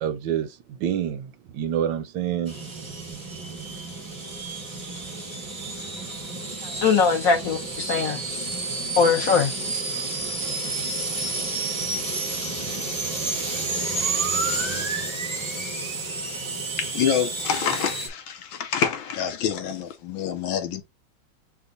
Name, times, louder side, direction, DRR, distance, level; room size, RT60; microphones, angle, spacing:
voice 1, 0.0-2.6, right 9 dB, 75° right, 1.1 m, -27 dB
sound 1, 2.4-18.1, right 3 dB, 35° right, 0.4 m, -30 dB
voice 2, 6.6-8.2 9.0-9.5, left 5 dB, 65° left, 0.9 m, -21 dB
voice 3, 16.6-20.8, left 8 dB, 85° left, 1.7 m, -27 dB
5.1 x 2.4 x 3.9 m
omnidirectional pair, 2.1 m